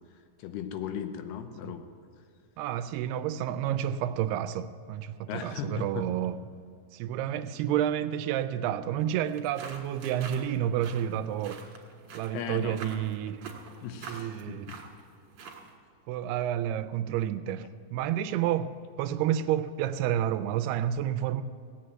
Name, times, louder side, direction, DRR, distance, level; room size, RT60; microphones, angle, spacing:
voice 1, 0.4-1.9 5.3-6.1 12.3-12.8 13.8-14.8, left 8 dB, 80° left, 8 dB, 2.8 m, -37 dB
voice 2, 2.6-6.4 6.9-11.7 12.1-13.5 14.0-14.7 16.1-21.4, right 11 dB, 80° right, 11 dB, 2.4 m, -30 dB
sound 1, 9.3-15.8, right 5 dB, 55° right, 2.3 m, -46 dB
17.0 x 8.7 x 7.6 m, 2.1 s
omnidirectional pair, 4.9 m